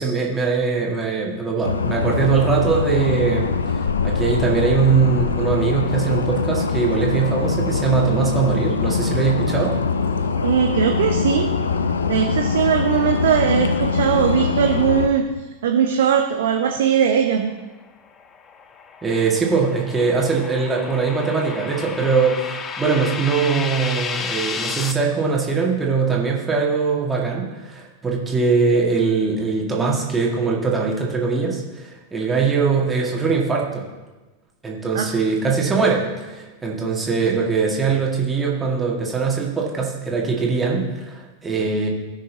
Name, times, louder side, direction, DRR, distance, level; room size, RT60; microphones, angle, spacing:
voice 1, 0.0-3.5 4.0-9.7 19.0-33.9 34.6-41.9, right 5 dB, 15° right, -2 dB, 2.0 m, -21 dB
sound 1, 1.6-15.1, left 5 dB, 70° left, 0.5 m, -23 dB
voice 2, 10.4-11.5 12.1-15.2 15.6-17.5 34.9-35.1, right 8 dB, 60° right, 4 dB, 0.7 m, -19 dB
sound 2, 18.1-24.9, left 5 dB, 25° left, 0.6 m, -32 dB
17.5 x 6.3 x 2.9 m, 1.2 s
figure-of-eight pair, 90°, 0 cm